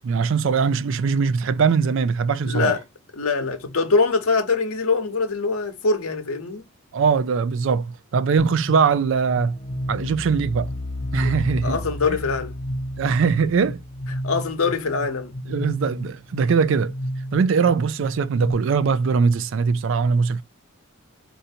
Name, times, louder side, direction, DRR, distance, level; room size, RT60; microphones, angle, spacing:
voice 1, 0.0-2.7 6.9-9.6 9.9-10.7 11.1-11.8 13.0-13.8 15.5-16.9 17.3-20.4, right 5 dB, 60° right, 0.3 m, -21 dB
voice 2, 2.5-2.8 3.1-6.6 11.2-11.3 11.6-12.6 14.2-15.3, left 4 dB, 80° left, 0.9 m, -23 dB
sound 1, 8.4-18.5, equal, 30° left, 0.8 m, -32 dB
3.3 x 2.7 x 2.7 m
head